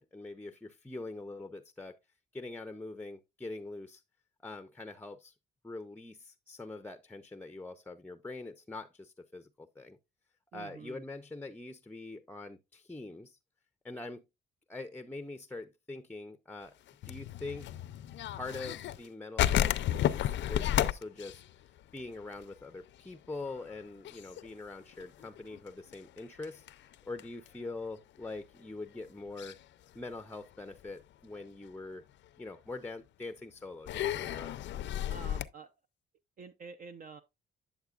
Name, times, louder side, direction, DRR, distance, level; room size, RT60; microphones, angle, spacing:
voice 1, 0.0-2.0 2.3-4.0 4.4-5.3 5.6-10.0 10.5-13.4 13.8-14.2 14.7-16.7 17.0-17.8 18.3-21.4 21.9-29.6 29.9-32.0 32.4-34.6, left 2 dB, 10° left, 0.5 m, -44 dB
voice 2, 10.5-11.0 35.1-35.7 36.4-37.2, right 4 dB, 45° right, 0.6 m, -48 dB
sound 1, 16.9-19.1 19.4-22.6 22.9-23.0 23.4-23.7 24.0-27.5 28.2-28.3 29.4-29.6 30.1-30.8 31.3-31.4 32.8-32.9 33.9-35.4, left 12 dB, 70° left, 0.5 m, -32 dB
9.4 x 6.8 x 2.4 m
cardioid pair, 90°, 20 cm